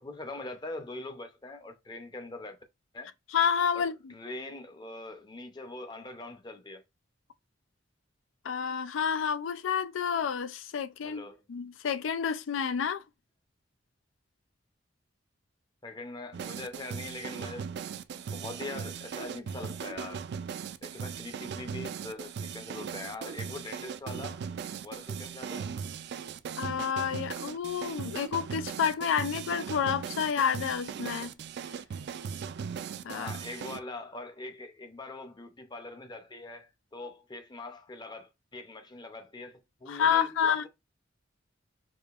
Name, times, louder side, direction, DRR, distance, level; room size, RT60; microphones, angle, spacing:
voice 1, 0.0-2.6 2.9-3.1 3.7-6.8 11.0-11.4 15.8-17.8 18.1-20.3 20.8-24.4 24.8-25.7 33.1-40.7, left 2 dB, 25° left, 0.6 m, -42 dB
voice 2, 3.3-4.1 8.4-13.0 26.6-31.3 33.0-33.3 39.9-40.6, left 7 dB, 90° left, 0.4 m, -29 dB
sound 1, 16.3-33.8, right 6 dB, 60° right, 0.3 m, -38 dB
4.9 x 2.7 x 2.4 m
head